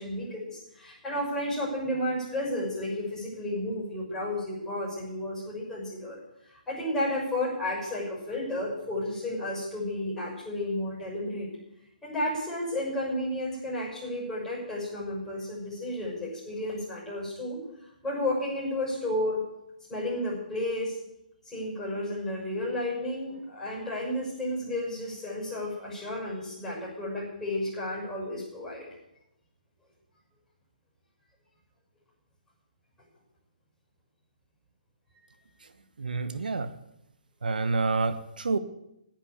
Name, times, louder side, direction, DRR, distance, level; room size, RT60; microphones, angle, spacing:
voice 1, 0.0-6.2 6.4-11.5 12.0-17.6 18.0-19.4 19.9-21.0 21.4-28.9 36.4-36.5, left 1 dB, 10° left, -5 dB, 6.3 m, -32 dB
voice 2, 36.0-36.7 37.4-38.6, right 3 dB, 75° right, 11 dB, 1.2 m, -28 dB
10.5 x 9.0 x 8.5 m, 0.85 s
figure-of-eight pair, 140°, 5 cm